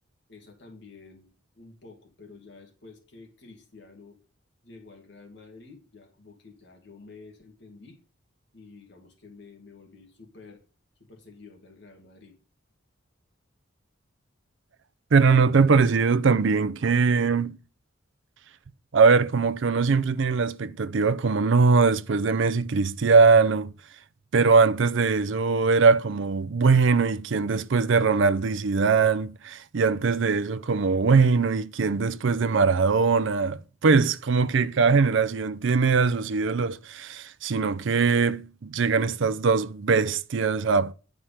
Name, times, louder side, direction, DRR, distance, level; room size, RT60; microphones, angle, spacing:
voice 1, 0.3-1.3 1.6-4.2 4.6-8.0 8.5-10.6 11.0-12.4, left 3 dB, 55° left, 2.3 m, -50 dB
voice 2, 15.1-17.6 18.9-23.7 24.3-40.9, right 4 dB, 60° right, 0.5 m, -21 dB
10.0 x 4.8 x 5.7 m
head